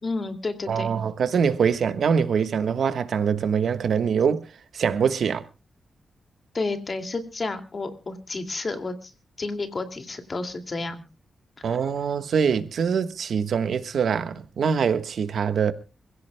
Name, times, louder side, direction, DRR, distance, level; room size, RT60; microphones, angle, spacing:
voice 1, 0.0-0.9 6.5-9.1 9.4-11.0 11.7-11.8, left 3 dB, 35° left, 2.3 m, -31 dB
voice 2, 0.7-4.5 4.7-5.4 11.6-15.7, right 6 dB, 70° right, 1.2 m, -24 dB
26.5 x 16.5 x 2.2 m
wide cardioid pair, 115°, 0 cm